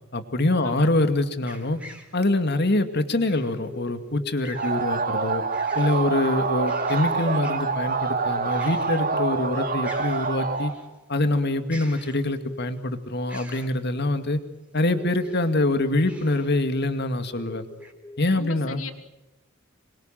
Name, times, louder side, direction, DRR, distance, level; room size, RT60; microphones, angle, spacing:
voice 1, 0.1-1.8 2.1-5.4 5.8-10.7 11.1-14.4 14.7-17.7 18.2-18.8, left 2 dB, 55° left, 8 dB, 2.3 m, -24 dB
sound 1, 1.4-2.2 3.2-3.6 4.4-4.8 5.3-6.1 6.4-7.8 8.5-9.2 9.4-9.5 9.8-10.9 11.7-12.6 13.3-13.8 15.0-15.6 16.1-16.5 17.1-17.2 17.8-17.9, right 1 dB, 5° right, 4.0 m, -45 dB
sound 2, 2.5-4.6 5.7-10.4 12.4-12.7 13.6-16.2 16.5-17.1 17.4-18.2, left 2 dB, 15° left, 5.7 m, -43 dB
sound 3, 4.5-10.7, right 4 dB, 45° right, 2.5 m, -26 dB
voice 2, 18.3-18.9, left 4 dB, 85° left, 7 dB, 2.9 m, -38 dB
27.0 x 23.0 x 7.6 m, 0.96 s
head